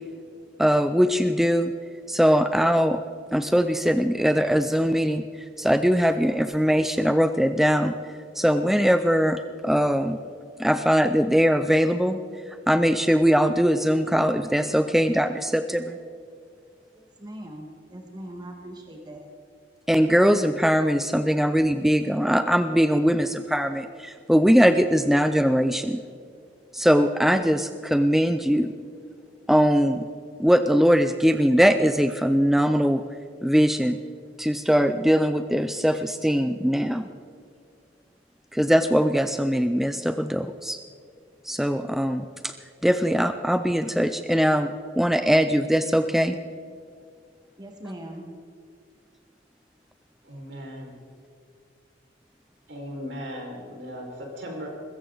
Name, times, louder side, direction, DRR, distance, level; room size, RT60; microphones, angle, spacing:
voice 1, 0.6-1.7 2.1-3.0 3.3-5.2 5.6-7.9 8.4-10.2 10.6-12.2 12.7-16.0 19.9-26.0 26.7-28.7 29.5-30.0 30.4-33.0 33.4-34.0 34.4-37.1 38.5-40.8 41.4-42.5 42.8-44.7 45.0-46.4, equal, ahead, 9 dB, 0.4 m, -21 dB
voice 2, 17.0-19.3 47.6-48.2, right 1 dB, 25° right, 2 dB, 1.5 m, -40 dB
voice 3, 50.2-50.9 52.7-54.7, equal, 70° right, -1 dB, 5.0 m, -37 dB
20.5 x 15.5 x 3.9 m, 2.3 s
head